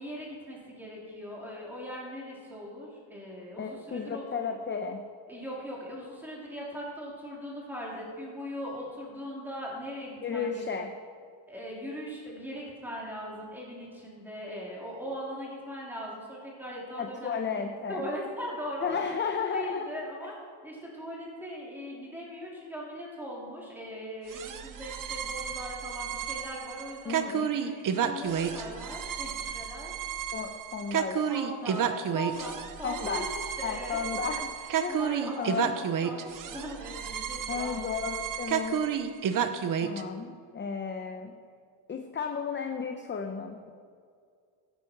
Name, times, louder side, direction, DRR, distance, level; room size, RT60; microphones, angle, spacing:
voice 1, 0.0-4.2 5.3-10.7 11.5-17.4 17.9-19.0 19.4-20.4 20.6-29.9 31.3-33.2 33.6-34.3 34.9-37.9, equal, 5° right, -5 dB, 3.7 m, -40 dB
voice 2, 3.6-5.0 10.2-10.9 17.0-18.1 18.8-19.9 27.1-27.5 30.3-31.3 32.8-33.2 33.6-35.8 37.5-38.8 39.8-41.4 41.9-43.7, left 6 dB, 25° left, 4 dB, 0.8 m, -33 dB
sound 1, 24.3-40.0, right 8 dB, 45° right, 0.8 m, -32 dB
16.5 x 10.5 x 4.7 m, 2.2 s
cardioid pair, 150°, 46 cm